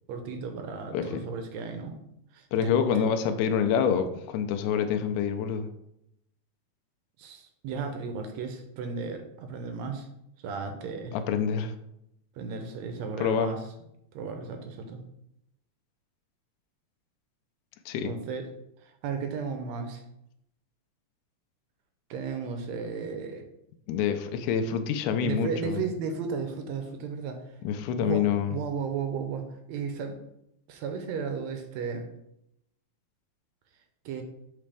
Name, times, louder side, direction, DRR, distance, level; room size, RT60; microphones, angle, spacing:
voice 1, 0.1-2.0 2.3-3.1 7.2-10.1 10.4-11.2 12.3-13.6 14.1-15.0 18.0-18.5 18.8-20.0 22.1-23.4 25.2-27.5 28.0-30.2 30.7-32.1 34.0-34.2, right 5 dB, 75° right, 6 dB, 1.8 m, -34 dB
voice 2, 0.9-1.2 2.5-5.7 11.1-11.7 13.2-13.5 17.9-18.1 23.9-25.8 27.6-28.5, left 7 dB, 80° left, 8 dB, 2.0 m, -27 dB
7.5 x 4.0 x 3.4 m, 0.80 s
omnidirectional pair, 3.6 m